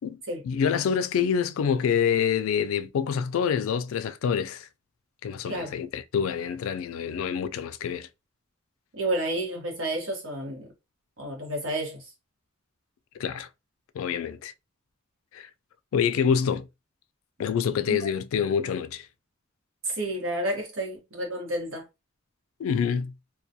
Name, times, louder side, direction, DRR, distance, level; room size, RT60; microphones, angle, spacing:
voice 1, 0.4-4.7 5.2-8.1 13.2-13.5 13.9-14.5 15.3-15.5 15.9-16.7 17.4-19.1 22.6-23.1, left 7 dB, 80° left, 0.3 m, -26 dB
voice 2, 8.9-10.7 11.2-12.1 17.9-18.1 19.8-21.9, right 1 dB, 75° right, 1.0 m, -30 dB
2.2 x 2.2 x 2.7 m
head